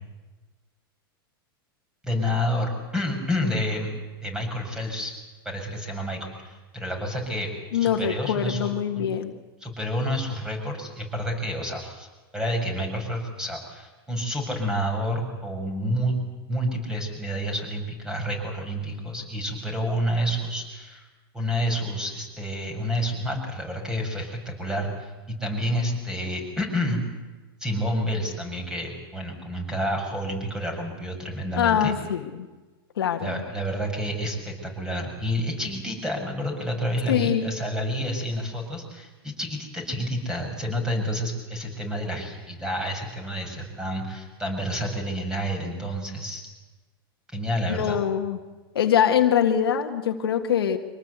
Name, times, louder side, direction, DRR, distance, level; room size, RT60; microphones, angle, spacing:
voice 1, 2.0-3.9 4.2-5.1 5.4-8.7 8.9-9.0 9.6-12.1 12.3-16.1 16.5-21.1 21.3-27.0 27.6-31.9 33.2-46.4 47.3-48.0, equal, 5° right, 3 dB, 6.5 m, -29 dB
voice 2, 7.7-9.3 31.6-32.5 33.0-33.4 37.1-37.5 47.7-48.4 48.7-50.8, left 9 dB, 90° left, 5 dB, 1.7 m, -23 dB
25.0 x 19.0 x 8.2 m, 1.2 s
hypercardioid pair, 120°, 12 cm